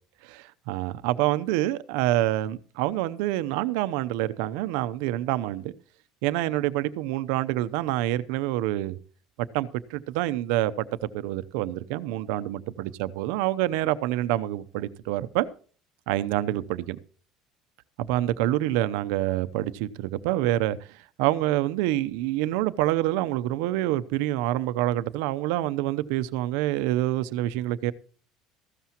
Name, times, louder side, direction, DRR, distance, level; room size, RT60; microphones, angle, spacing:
voice 1, 0.3-5.7 6.2-9.0 9.4-10.9 11.1-15.5 16.1-17.0 18.0-20.8 21.2-27.9, right 15 dB, 80° right, 0.7 m, -27 dB
15.0 x 13.0 x 3.0 m
cardioid pair, 120°, 0 cm